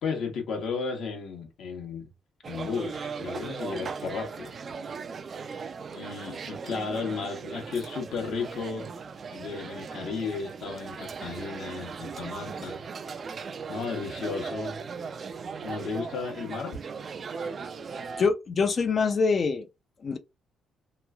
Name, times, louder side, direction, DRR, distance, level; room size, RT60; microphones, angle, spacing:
voice 1, 0.0-2.1 2.5-4.5 5.9-8.9 9.3-12.8 13.7-14.8 15.6-16.8, left 5 dB, 75° left, 1.0 m, -34 dB
sound 1, 2.4-18.3, right 5 dB, 45° right, 0.3 m, -38 dB
voice 2, 18.2-19.7 20.0-20.2, left 4 dB, 45° left, 0.4 m, -24 dB
3.0 x 2.3 x 2.2 m
cardioid pair, 90°, 0 cm